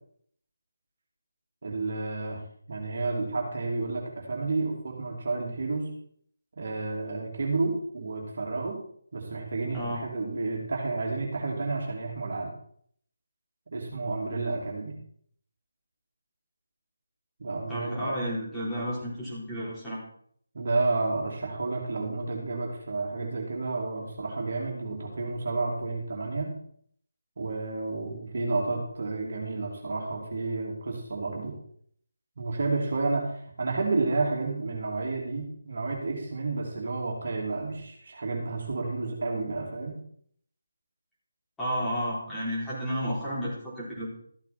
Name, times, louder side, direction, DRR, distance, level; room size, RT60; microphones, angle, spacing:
voice 1, 1.6-2.4 2.7-5.9 6.6-8.8 9.1-12.5 13.7-15.0 17.4-18.1 18.7-18.8 20.5-26.5 27.4-31.5 32.4-40.0, right 3 dB, 50° right, -1 dB, 2.7 m, -31 dB
voice 2, 9.7-10.0 17.7-20.0 41.6-44.1, equal, 5° left, -10 dB, 4.2 m, -32 dB
14.0 x 8.1 x 4.3 m, 0.63 s
figure-of-eight pair, 155°, 0 cm